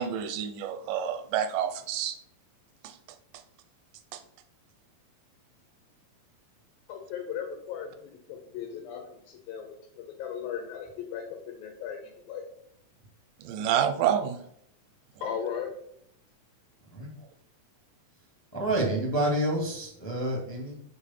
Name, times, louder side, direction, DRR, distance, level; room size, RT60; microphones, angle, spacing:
voice 1, 0.0-2.2 2.8-3.0 4.1-4.2 13.4-14.4, right 9 dB, 80° right, 9 dB, 2.0 m, -28 dB
voice 2, 6.9-12.4 15.2-15.7, left 8 dB, 85° left, 3 dB, 3.0 m, -37 dB
voice 3, 18.5-20.8, right 1 dB, 15° left, -1 dB, 0.4 m, -28 dB
6.8 x 4.8 x 5.6 m, 0.69 s
omnidirectional pair, 4.1 m